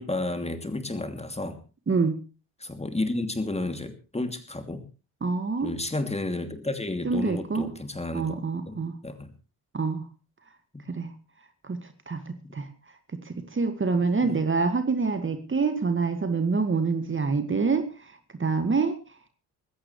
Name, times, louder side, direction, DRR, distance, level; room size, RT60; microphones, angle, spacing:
voice 1, 0.0-1.6 2.6-4.8 5.6-8.4 8.6-9.3 10.7-10.8 12.4-12.6 14.2-14.3, left 2 dB, 15° left, 8 dB, 2.8 m, -32 dB
voice 2, 1.9-2.2 5.2-5.7 7.0-7.7 8.1-9.0 9.7-10.0 10.9-11.1 11.6-12.7 13.1-19.0, right 4 dB, 25° right, 9 dB, 2.1 m, -26 dB
20.5 x 16.0 x 3.3 m, 0.35 s
figure-of-eight pair, 45°, 46 cm